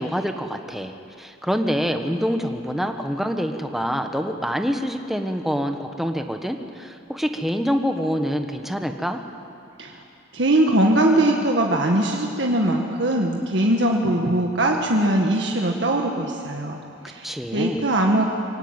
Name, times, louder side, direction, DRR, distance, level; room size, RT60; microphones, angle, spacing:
voice 1, 0.0-9.2 17.2-17.8, equal, ahead, 5 dB, 1.2 m, -26 dB
voice 2, 10.3-16.8 17.1-18.2, right 1 dB, 70° right, 1 dB, 1.7 m, -21 dB
23.5 x 17.5 x 9.0 m, 2.5 s
head